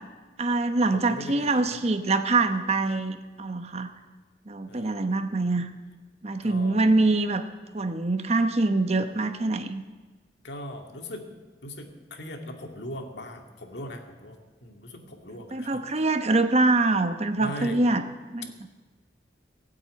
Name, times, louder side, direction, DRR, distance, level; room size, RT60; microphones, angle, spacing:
voice 1, 0.4-3.9 4.5-5.7 6.2-7.4 7.7-9.8 15.5-18.0 18.3-18.7, right 2 dB, 40° right, 9 dB, 0.9 m, -24 dB
voice 2, 0.9-1.7 4.7-5.1 6.4-6.9 10.4-11.2 11.6-14.4 14.6-15.8 17.4-17.8, equal, 85° left, 3 dB, 2.1 m, -39 dB
17.0 x 8.8 x 8.7 m, 1.3 s
head